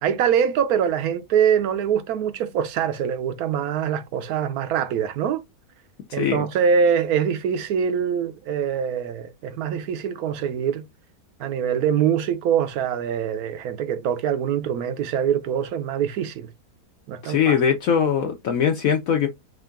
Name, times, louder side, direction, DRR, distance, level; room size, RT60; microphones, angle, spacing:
voice 1, 0.0-5.4 6.1-10.9 11.4-16.5 17.1-17.6, right 8 dB, 75° right, 1.0 m, -24 dB
voice 2, 6.1-6.4 17.2-19.3, left 7 dB, 65° left, 1.0 m, -21 dB
3.7 x 2.5 x 3.4 m
omnidirectional pair, 1.7 m